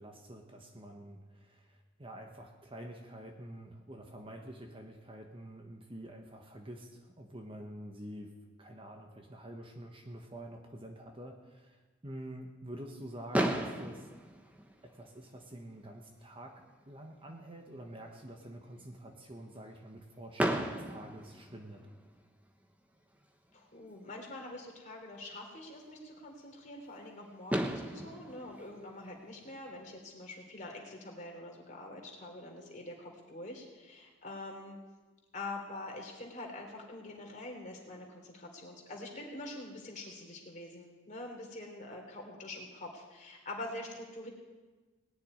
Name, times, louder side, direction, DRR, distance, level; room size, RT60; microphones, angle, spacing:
voice 1, 0.0-1.7 2.0-11.8 12.0-14.1 14.8-21.8, right 1 dB, 30° right, 3 dB, 1.3 m, -47 dB
Fireworks, 13.3-15.4 16.2-16.3 16.5-16.7 17.0-17.1 20.4-22.2 23.9-24.0 27.0-27.1 27.5-29.8, right 1 dB, 10° right, 1.1 m, -35 dB
voice 2, 23.5-34.8 35.3-44.3, left 2 dB, 40° left, 1 dB, 3.4 m, -45 dB
18.5 x 6.9 x 9.8 m, 1.3 s
head